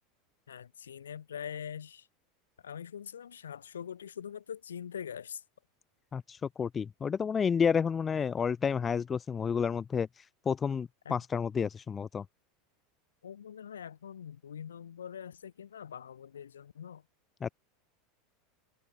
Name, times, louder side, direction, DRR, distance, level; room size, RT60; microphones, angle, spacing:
voice 1, 0.5-2.1 2.6-5.4 11.0-11.2 13.2-17.0, left 8 dB, 85° left, 3.4 m, -43 dB
voice 2, 6.1-12.2 17.4-17.5, left 6 dB, 25° left, 0.8 m, -30 dB
hypercardioid pair, 85°, 0 cm